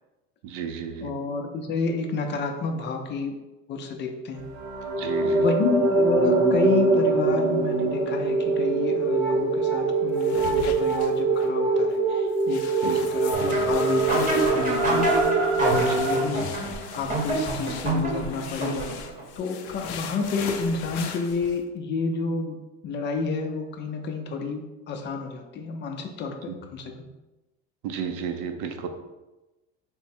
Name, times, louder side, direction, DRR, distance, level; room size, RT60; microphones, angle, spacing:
voice 1, 0.4-1.1 5.0-5.4 12.8-13.0 15.7-16.1 26.5-26.6 27.8-28.9, right 7 dB, 65° right, 6 dB, 0.6 m, -32 dB
voice 2, 1.0-3.3 3.7-4.5 5.3-15.1 15.6-16.5 16.9-22.6 22.8-27.0, left 4 dB, 35° left, 4 dB, 0.4 m, -30 dB
sound 1, 4.4-16.2, right 3 dB, 85° right, 1.1 m, -23 dB
sound 2, 10.2-11.5 11.9-12.0 12.4-21.6, left 6 dB, 85° left, 0.5 m, -39 dB
sound 3, 13.3-19.2, right 2 dB, 25° right, 0.9 m, -28 dB
3.6 x 2.1 x 4.2 m, 1.1 s
supercardioid pair, 120°, 32 cm